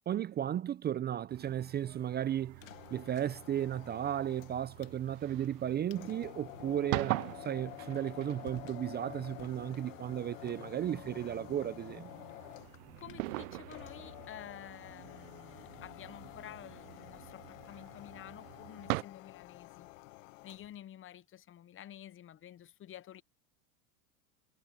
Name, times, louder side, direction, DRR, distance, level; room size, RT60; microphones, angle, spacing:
voice 1, 0.1-2.6 2.9-12.1, right 10 dB, 25° right, 0.6 m, -35 dB
sound 1, 1.3-19.0, right 23 dB, 65° right, 0.5 m, -44 dB
sound 2, 2.5-20.8, left 22 dB, 65° left, 1.8 m, -50 dB
voice 2, 13.0-19.9 20.4-23.2, left 11 dB, 30° left, 1.0 m, -50 dB
hypercardioid pair, 105°, 43 cm